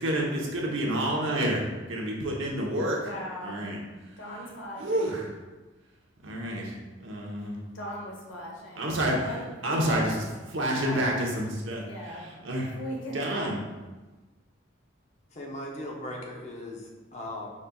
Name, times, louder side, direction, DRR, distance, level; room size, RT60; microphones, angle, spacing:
voice 1, 0.0-1.6 1.9-3.0 3.4-3.8 4.8-5.3 6.2-6.7 7.0-7.6 8.8-9.3 9.6-10.2 10.5-12.7 13.1-13.6, right 1 dB, 75° right, -2 dB, 0.9 m, -29 dB
voice 2, 3.0-3.7 4.2-5.2 7.7-9.0 9.2-10.2 10.8-11.2 11.8-13.5, equal, 75° left, -2 dB, 1.1 m, -39 dB
voice 3, 15.3-17.5, left 1 dB, 35° left, 0 dB, 0.6 m, -38 dB
5.1 x 4.2 x 2.3 m, 1.2 s
head